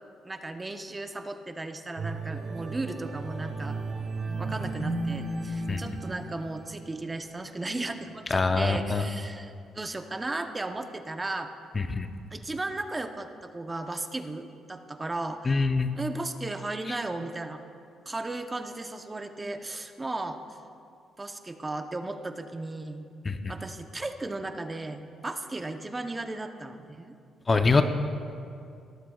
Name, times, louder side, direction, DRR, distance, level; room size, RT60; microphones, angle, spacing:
voice 1, 0.2-3.8 4.3-11.5 12.3-15.7 15.9-17.6 18.1-20.4 21.2-23.1 23.5-27.1, right 2 dB, 20° right, 7 dB, 0.7 m, -35 dB
sound 1, 2.0-7.2 7.7-7.9, right 2 dB, 55° right, 1.4 m, -34 dB
voice 2, 8.3-9.0 11.8-12.1 15.5-15.9 23.3-23.4 27.5-27.8, left 3 dB, 30° left, 8 dB, 0.6 m, -24 dB
18.0 x 13.0 x 2.3 m, 2.5 s
cardioid pair, 90°, 0 cm